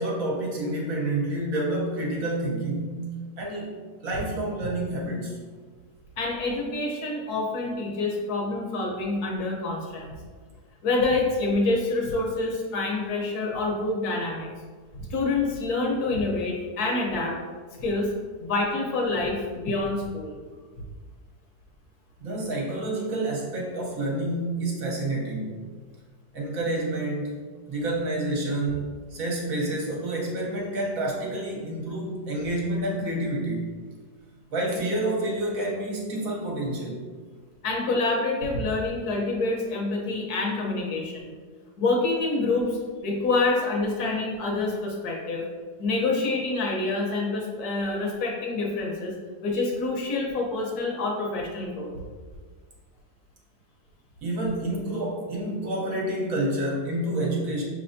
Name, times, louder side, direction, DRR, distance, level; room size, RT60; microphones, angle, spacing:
voice 1, 0.0-3.1 3.4-3.8 4.0-5.4 22.2-25.6 26.3-27.4 27.7-33.7 34.5-37.0 54.2-57.6, right 1 dB, 60° right, -2 dB, 1.2 m, -28 dB
voice 2, 6.2-10.1 10.8-14.5 14.9-17.3 17.8-18.1 18.4-20.4 37.6-41.2 41.8-45.5 45.8-49.1 49.4-51.9, left 3 dB, 70° left, -1 dB, 1.3 m, -27 dB
6.0 x 3.3 x 2.6 m, 1.5 s
omnidirectional pair, 1.8 m